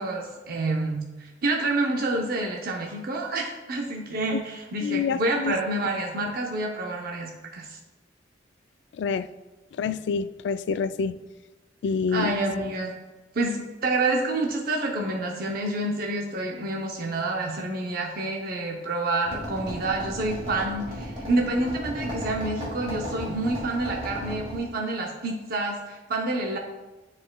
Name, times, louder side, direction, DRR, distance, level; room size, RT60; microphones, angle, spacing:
voice 1, 0.0-7.8 12.1-12.9 13.3-26.6, right 2 dB, 55° right, 0 dB, 0.7 m, -28 dB
voice 2, 4.8-5.6 9.0-9.3 9.8-11.2 11.8-12.3, left 5 dB, 65° left, 13 dB, 0.3 m, -27 dB
sound 1, 19.2-24.6, equal, 35° right, 1.9 m, -35 dB
9.7 x 4.8 x 2.2 m, 1.1 s
head